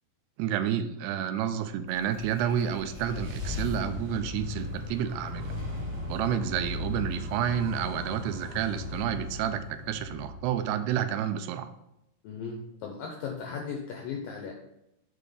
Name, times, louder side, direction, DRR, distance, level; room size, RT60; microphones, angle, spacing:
voice 1, 0.4-5.5 6.1-11.7, right 9 dB, 85° right, 9 dB, 2.5 m, -30 dB
sound 1, 1.9-11.0, left 2 dB, 50° right, 1.6 m, -37 dB
voice 2, 12.2-14.5, left 5 dB, 85° left, 1 dB, 2.0 m, -37 dB
7.4 x 4.0 x 5.0 m, 0.85 s
omnidirectional pair, 4.8 m